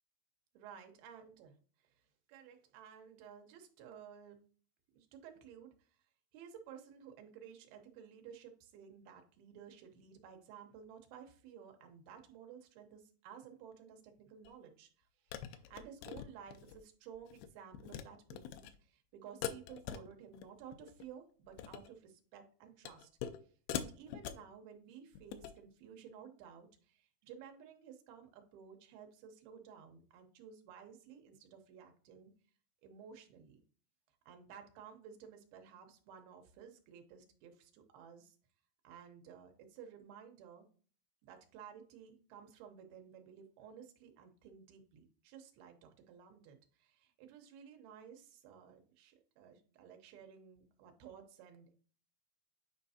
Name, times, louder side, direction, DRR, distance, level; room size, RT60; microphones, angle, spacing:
voice 1, 0.5-1.5 2.3-4.4 5.0-5.7 6.3-23.1 23.7-32.3 32.8-33.6 34.3-38.4 38.8-40.7 41.2-51.7, right 8 dB, 75° right, 5 dB, 2.8 m, -55 dB
sound 1, 14.4-14.5 15.3-16.8 17.2-17.5 17.7-18.0 18.3-18.7 19.4-20.5 20.7-21.0 21.5-21.9 22.9-23.4 23.7-24.5 25.1-25.6, left 10 dB, 80° left, 2.4 m, -43 dB
9.3 x 4.4 x 2.8 m, 0.41 s
omnidirectional pair, 4.6 m